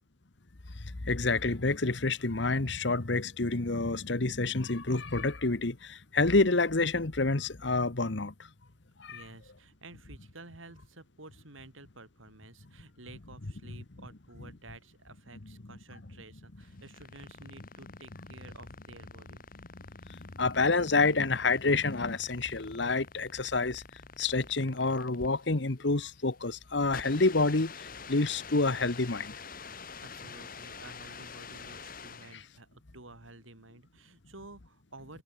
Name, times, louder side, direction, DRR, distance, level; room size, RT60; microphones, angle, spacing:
voice 1, 0.8-8.3 9.0-9.2 20.1-23.8 24.2-27.7 28.1-29.3 32.3-32.4, left 3 dB, 65° left, 1.2 m, -28 dB
voice 2, 9.1-19.4 30.0-35.2, right 2 dB, 90° right, 5.9 m, -52 dB
sound 1, 16.6-32.5, left 5 dB, 45° left, 2.8 m, -47 dB
head